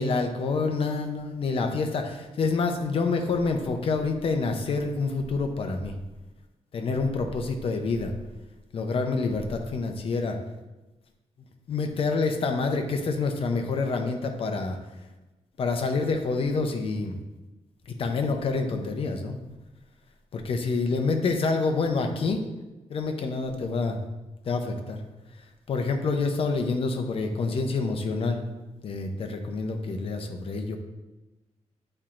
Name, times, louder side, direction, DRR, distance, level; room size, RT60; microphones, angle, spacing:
voice 1, 0.0-5.9 6.7-8.1 8.7-10.4 11.7-14.8 15.6-17.2 17.9-19.4 20.3-22.4 22.9-24.0 24.4-25.0 25.7-28.4 28.8-30.8, left 4 dB, 50° left, 4 dB, 0.7 m, -27 dB
8.8 x 4.3 x 2.5 m, 1.1 s
wide cardioid pair, 170°, 12 cm